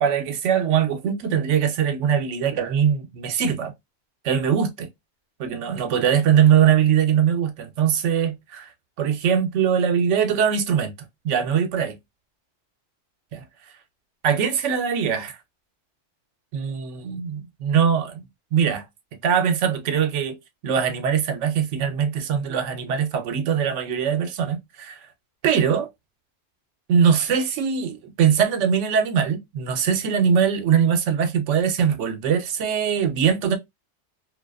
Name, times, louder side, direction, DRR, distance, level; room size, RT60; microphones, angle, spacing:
voice 1, 0.0-3.7 4.2-4.9 5.4-8.7 9.0-10.9 11.2-12.0 13.3-13.4 14.2-15.3 16.5-18.2 18.5-18.9 19.2-20.4 20.6-25.1 25.4-25.9 26.9-33.6, right 8 dB, 90° right, 0.9 m, -21 dB
2.4 x 2.3 x 2.3 m
omnidirectional pair, 1.2 m